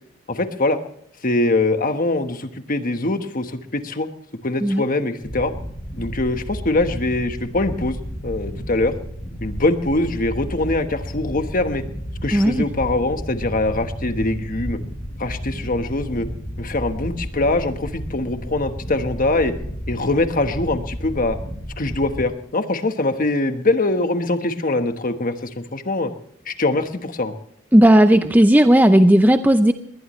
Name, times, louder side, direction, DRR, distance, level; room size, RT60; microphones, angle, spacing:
voice 1, 0.3-0.8 1.2-4.1 4.4-5.5 6.0-8.0 8.2-8.9 9.4-11.8 12.2-14.8 15.2-16.3 16.6-19.5 19.9-21.4 21.8-26.1 26.5-27.3, left 2 dB, 40° left, 8 dB, 1.3 m, -23 dB
sound 1, 5.2-22.2, equal, 20° left, 6.8 m, -32 dB
voice 2, 12.3-12.6 27.7-29.7, right 1 dB, 10° right, 8 dB, 0.6 m, -14 dB
20.5 x 20.0 x 3.2 m, 0.66 s
head